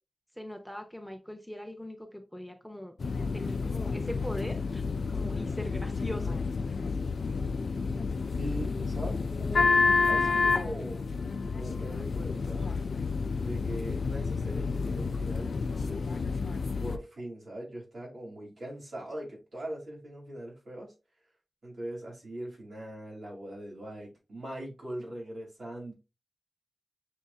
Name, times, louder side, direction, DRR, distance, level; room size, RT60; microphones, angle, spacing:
voice 1, 0.4-3.0 3.3-6.4, left 1 dB, ahead, 4 dB, 0.7 m, -41 dB
sound 1, 3.0-17.0, left 4 dB, 75° left, 0.4 m, -30 dB
voice 2, 8.4-9.8 10.1-11.0 11.5-12.7 13.3-16.1 16.8-20.9 21.6-25.9, right 1 dB, 70° right, -3 dB, 2.7 m, -41 dB
6.4 x 2.7 x 2.3 m, 0.28 s
wide cardioid pair, 110°, 0 cm